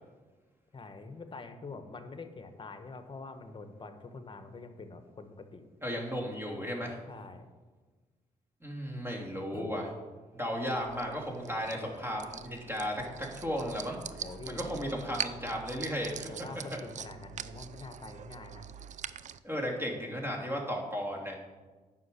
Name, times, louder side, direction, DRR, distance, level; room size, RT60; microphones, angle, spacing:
voice 1, 0.7-5.7 7.1-7.5 9.5-9.7 14.2-14.8 16.3-18.6, left 3 dB, 35° left, 8 dB, 1.1 m, -45 dB
voice 2, 5.8-7.0 8.6-9.9 10.3-14.0 14.5-16.3 19.4-21.4, equal, 15° right, 0 dB, 2.7 m, -35 dB
sound 1, 10.7-19.4, right 8 dB, 55° right, 0.5 m, -43 dB
9.4 x 5.8 x 6.8 m, 1.3 s
cardioid pair, 65°, 15 cm